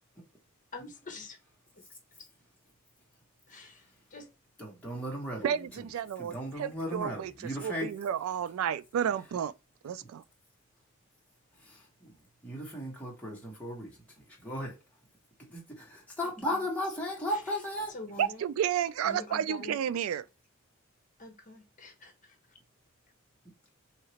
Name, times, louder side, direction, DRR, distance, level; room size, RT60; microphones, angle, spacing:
voice 1, 0.7-1.4 1.7-1.8 3.5-4.3 16.2-16.6 17.3-17.4 17.9-18.5 19.0-19.8 21.2-22.6, left 2 dB, 40° left, 0.9 m, -46 dB
voice 2, 4.6-5.8 6.2-7.9 11.6-12.1 12.4-14.8 15.5-17.9, equal, 5° left, 1.4 m, -36 dB
voice 3, 5.4-7.3 7.6-9.5 9.8-10.2 18.2-20.3, right 9 dB, 85° right, 0.3 m, -31 dB
3.0 x 2.8 x 2.8 m
head